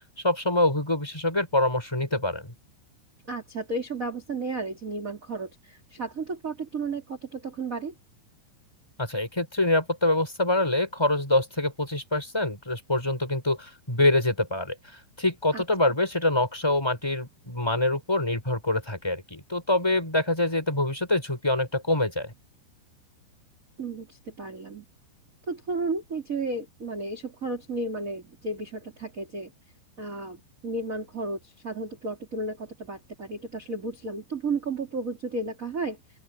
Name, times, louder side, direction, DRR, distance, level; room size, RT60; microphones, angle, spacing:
voice 1, 0.2-2.5 9.0-22.3, left 2 dB, 5° left, 6.0 m, -25 dB
voice 2, 3.3-7.9 15.5-15.9 23.8-24.8 25.5-29.5 30.0-36.0, right 3 dB, 20° right, 2.6 m, -33 dB
open air
omnidirectional pair, 5.6 m